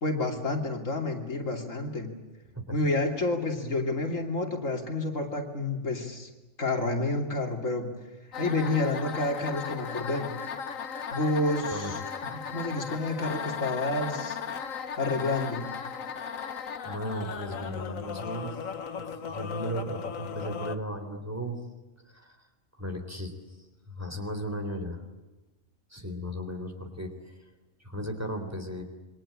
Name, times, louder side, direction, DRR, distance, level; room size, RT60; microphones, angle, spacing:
voice 1, 0.0-2.1 2.7-6.3 6.6-7.9 8.4-10.3 11.1-14.4 15.0-15.7, left 2 dB, 75° left, 2 dB, 3.3 m, -29 dB
sound 1, 8.3-20.8, left 6 dB, 90° left, 1.6 m, -36 dB
voice 2, 16.8-18.6 19.0-21.6 22.1-22.4 22.8-23.3 23.9-25.0 25.9-27.1 27.8-28.8, equal, 10° right, 4 dB, 3.6 m, -35 dB
27.5 x 24.0 x 8.8 m, 1.1 s
omnidirectional pair, 1.3 m